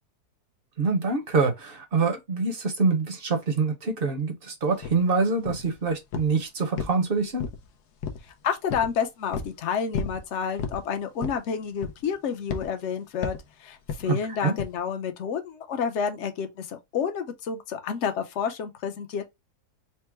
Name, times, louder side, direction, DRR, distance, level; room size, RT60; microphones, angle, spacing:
voice 1, 0.8-7.5 14.1-14.5, right 4 dB, 45° right, 0.8 m, -25 dB
sound 1, 4.8-5.0 5.5-5.8 6.1-6.4 6.8-7.7 8.0-8.3 8.7-8.9 9.3-9.6 9.9-10.2 10.6-10.8 11.2-11.5 11.8-12.1 12.5-12.7 13.2-13.5 13.9-14.1 14.6-14.8, left 5 dB, 85° left, 1.3 m, -32 dB
voice 2, 8.4-19.4, left 7 dB, 55° left, 0.9 m, -30 dB
4.4 x 2.1 x 4.5 m
omnidirectional pair, 1.7 m